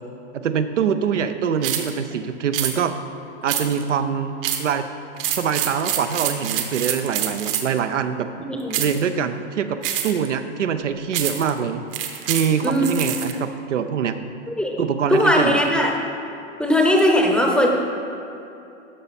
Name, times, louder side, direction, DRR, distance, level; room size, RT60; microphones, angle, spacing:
voice 1, 0.3-2.9 3.4-4.9 5.3-8.3 8.8-9.8 10.0-11.8 12.3-14.2 14.8-15.6, right 7 dB, 90° right, 9 dB, 0.7 m, -24 dB
sound 1, 1.6-1.9 2.5-2.7 3.5-3.9 4.4-4.7 5.2-7.8 8.7-9.0 9.8-10.3 11.1-11.5 11.9-13.3, right 10 dB, 50° right, 1.0 m, -26 dB
voice 2, 8.4-8.8 12.6-12.9 14.5-14.8 15.1-15.9 16.6-17.7, equal, 5° left, 1 dB, 0.7 m, -19 dB
12.5 x 5.3 x 4.3 m, 2.8 s
hypercardioid pair, 130°, 35 cm